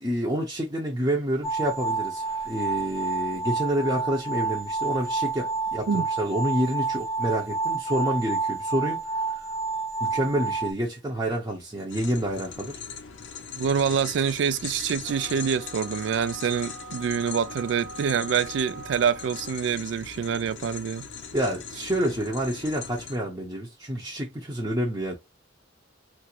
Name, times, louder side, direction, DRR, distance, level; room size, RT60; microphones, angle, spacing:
voice 1, 0.0-9.0 9.3-9.5 10.0-12.8 21.3-25.1, equal, 15° right, 0.7 m, -28 dB
sound 1, 1.4-10.7, right 4 dB, 20° left, 1.0 m, -29 dB
sound 2, 11.9-23.2, left 6 dB, 75° left, 0.5 m, -40 dB
voice 2, 13.6-21.1, right 7 dB, 65° right, 0.3 m, -26 dB
sound 3, 15.0-19.7, right 3 dB, 80° right, 0.7 m, -43 dB
3.1 x 2.4 x 2.9 m
head